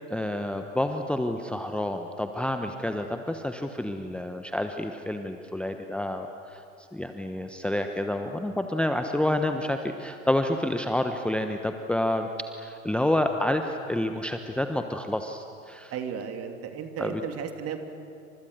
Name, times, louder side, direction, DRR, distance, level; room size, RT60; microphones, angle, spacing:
voice 1, 0.1-6.6 6.9-12.3 12.6-15.9 17.0-17.2, left 1 dB, 5° left, 6 dB, 1.1 m, -29 dB
voice 2, 15.9-17.8, right 7 dB, 35° right, 6 dB, 2.9 m, -34 dB
29.5 x 26.0 x 6.7 m, 2.8 s
figure-of-eight pair, 85°, 41 cm